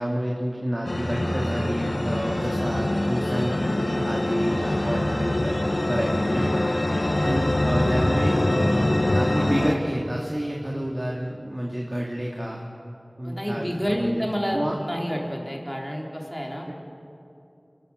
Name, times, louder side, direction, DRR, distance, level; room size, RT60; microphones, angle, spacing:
voice 1, 0.0-6.6 7.2-12.6 13.2-14.2 14.5-14.8, equal, 35° right, -2 dB, 2.2 m, -29 dB
sound 1, 0.8-9.7, left 1 dB, 80° left, 1.5 m, -24 dB
voice 2, 7.0-7.4 13.2-16.7, equal, ahead, -1 dB, 3.8 m, -29 dB
27.5 x 12.5 x 7.6 m, 2.7 s
wide cardioid pair, 40°, 0 cm